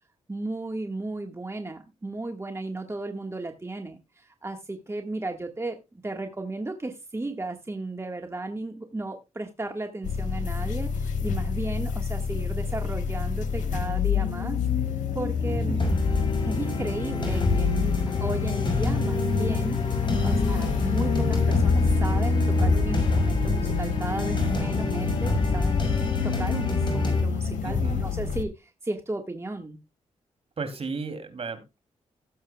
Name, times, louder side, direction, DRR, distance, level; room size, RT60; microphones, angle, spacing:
voice 1, 0.3-5.8 6.0-14.6 15.1-15.8 16.5-25.8 26.2-29.8, right 2 dB, 20° right, 4 dB, 1.6 m, -34 dB
sound 1, 10.0-28.4, left 5 dB, 85° left, 1.3 m, -27 dB
voice 2, 15.5-15.9 27.6-28.0 30.6-31.8, right 4 dB, 50° right, 7 dB, 2.9 m, -34 dB
sound 2, 15.8-27.2, left 2 dB, 40° left, 5.4 m, -28 dB
17.5 x 7.8 x 2.3 m, 0.25 s
cardioid pair, 60°, 13 cm